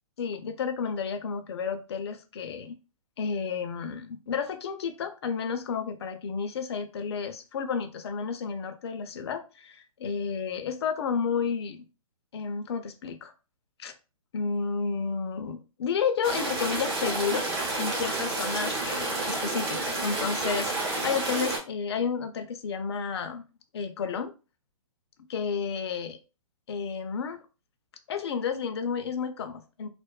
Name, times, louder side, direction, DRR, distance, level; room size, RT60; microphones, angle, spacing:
voice 1, 0.2-2.8 3.2-11.8 12.3-13.3 13.8-13.9 14.3-17.5 17.8-23.4 23.7-24.3 25.3-26.2 26.7-27.4 28.1-29.9, left 6 dB, 50° left, 7 dB, 0.4 m, -31 dB
sound 1, 16.2-21.6, right 2 dB, 45° right, 0.9 m, -30 dB
2.5 x 2.2 x 2.2 m, 0.32 s
hypercardioid pair, 170°, 18 cm